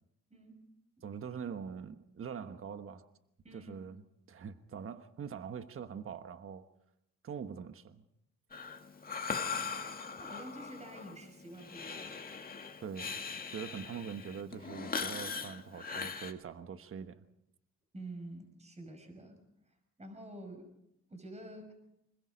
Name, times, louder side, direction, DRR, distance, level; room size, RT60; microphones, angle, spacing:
voice 1, 1.0-3.1 3.5-6.7 7.2-8.0 12.8-17.2, right 7 dB, 45° right, 9 dB, 1.3 m, -43 dB
Breathing, 8.5-16.3, left 5 dB, 30° left, 2.0 m, -40 dB
voice 2, 10.1-12.3 17.9-19.4 20.0-20.7 21.1-21.7, right 1 dB, 20° right, 5 dB, 5.9 m, -48 dB
26.0 x 21.0 x 5.2 m, 0.81 s
cardioid pair, 90°, 30 cm